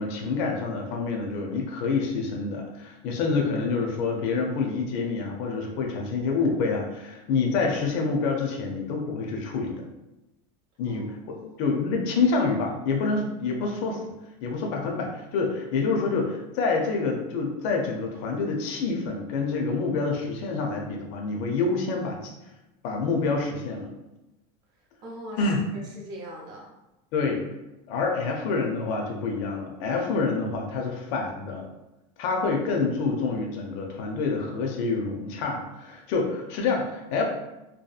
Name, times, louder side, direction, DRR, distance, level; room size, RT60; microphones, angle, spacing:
voice 1, 0.0-9.8 10.8-14.1 14.4-22.2 22.8-23.9 25.4-25.6 27.1-27.4 27.9-31.7 32.2-37.2, left 4 dB, 50° left, 1 dB, 0.4 m, -27 dB
voice 2, 10.9-11.7 25.0-25.4 25.7-26.7, equal, 30° right, -1 dB, 0.5 m, -42 dB
2.7 x 2.2 x 2.3 m, 0.98 s
cardioid pair, 175°, 15 cm